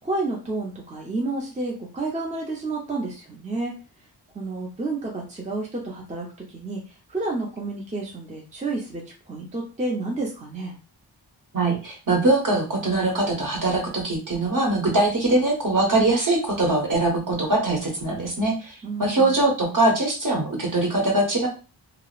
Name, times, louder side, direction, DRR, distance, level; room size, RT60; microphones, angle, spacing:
voice 1, 0.0-3.7 4.3-6.3 6.5-6.8 7.1-9.0 9.3-10.7 18.8-19.3, right 2 dB, 15° right, -2 dB, 0.6 m, -30 dB
voice 2, 11.5-18.7 19.0-21.5, right 2 dB, 40° right, 0 dB, 1.1 m, -22 dB
2.7 x 2.0 x 2.4 m, 0.33 s
wide cardioid pair, 70°, 47 cm